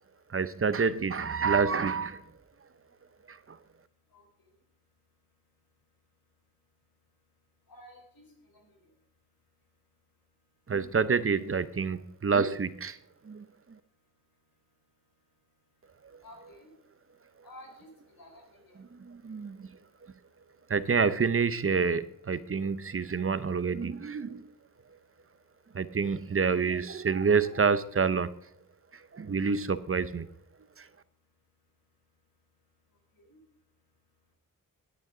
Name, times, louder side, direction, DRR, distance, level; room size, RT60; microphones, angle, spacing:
voice 1, 0.3-2.2 10.7-12.9 13.3-13.4 19.2-19.6 20.7-24.4 25.8-28.3 29.2-30.3, right 5 dB, 40° right, 14 dB, 0.7 m, -27 dB
voice 2, 7.7-8.2 8.7-8.8 16.2-16.7 17.4-18.8, left 1 dB, 90° left, 1 dB, 4.5 m, -52 dB
16.5 x 9.2 x 3.9 m, 0.76 s
wide cardioid pair, 85°, 34 cm